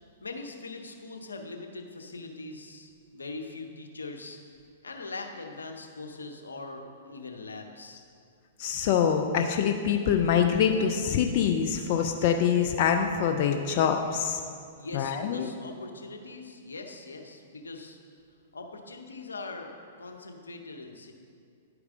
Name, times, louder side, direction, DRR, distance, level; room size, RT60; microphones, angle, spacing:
voice 1, 0.2-4.4 4.8-8.0 14.8-18.0 18.5-21.1, left 3 dB, 90° left, 3 dB, 0.8 m, -41 dB
voice 2, 8.6-14.4 14.9-15.5, left 8 dB, 50° left, 4 dB, 0.5 m, -25 dB
10.5 x 4.7 x 3.7 m, 2.3 s
hypercardioid pair, 115°, 0 cm